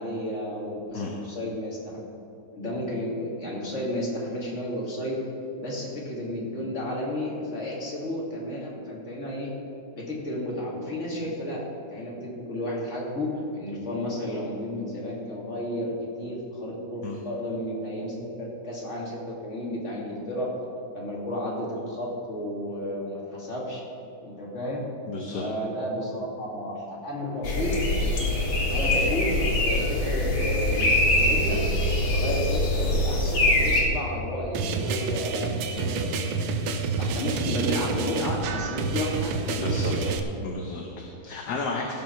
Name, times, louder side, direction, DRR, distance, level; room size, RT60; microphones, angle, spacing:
voice 1, 0.0-2.0 2.5-5.2 5.6-9.5 9.9-11.6 11.9-15.9 16.2-20.5 20.9-23.9 24.2-24.9 25.3-27.8 28.7-31.6 32.1-36.4 36.9-40.1, left 1 dB, 35° left, -4 dB, 2.7 m, -32 dB
voice 2, 25.1-25.5 39.5-40.2 40.4-41.9, left 3 dB, 55° left, 0 dB, 1.5 m, -33 dB
sound 1, 27.4-33.8, left 1 dB, 75° left, 2.7 m, -23 dB
sound 2, 34.5-40.2, right 4 dB, 80° right, 1.6 m, -28 dB
17.0 x 7.6 x 4.5 m, 2.8 s
omnidirectional pair, 2.2 m